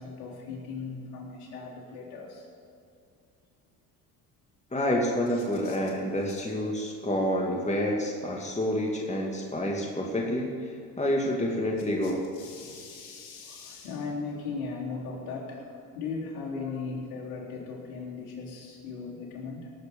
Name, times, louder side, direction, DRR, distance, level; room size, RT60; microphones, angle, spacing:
voice 1, 0.0-2.5 5.6-5.8 12.0-19.7, left 4 dB, 80° left, -4 dB, 3.9 m, -38 dB
voice 2, 4.7-12.2, left 1 dB, 15° left, -1 dB, 2.3 m, -28 dB
18.0 x 8.3 x 5.4 m, 2.4 s
hypercardioid pair, 65°, 45 cm